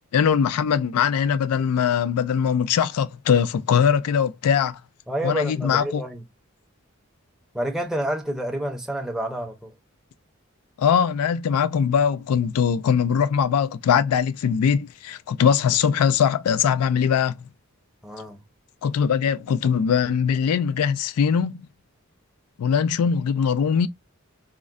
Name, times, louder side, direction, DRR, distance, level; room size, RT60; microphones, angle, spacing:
voice 1, 0.1-4.8 5.2-6.0 10.8-17.4 18.8-21.7 22.6-23.9, left 7 dB, 85° left, 0.3 m, -21 dB
voice 2, 5.1-6.2 7.5-9.7 18.0-18.4, right 1 dB, ahead, 0.5 m, -29 dB
3.6 x 2.1 x 2.3 m
head